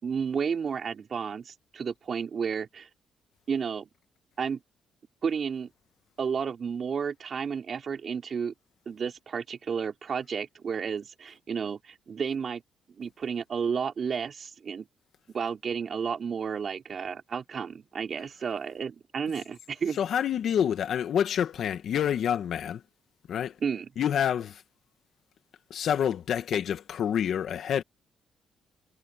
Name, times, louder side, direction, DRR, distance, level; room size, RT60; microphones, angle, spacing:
voice 1, 0.0-2.9 3.5-3.9 4.4-4.6 5.2-5.7 6.2-8.5 8.9-12.6 13.0-14.9 15.3-20.0 23.6-23.9, right 6 dB, 50° right, 5.4 m, -32 dB
voice 2, 20.0-22.8 23.3-23.6 24.0-24.6 25.7-27.8, left 9 dB, 65° left, 2.0 m, -27 dB
cardioid pair, 90°, 0 cm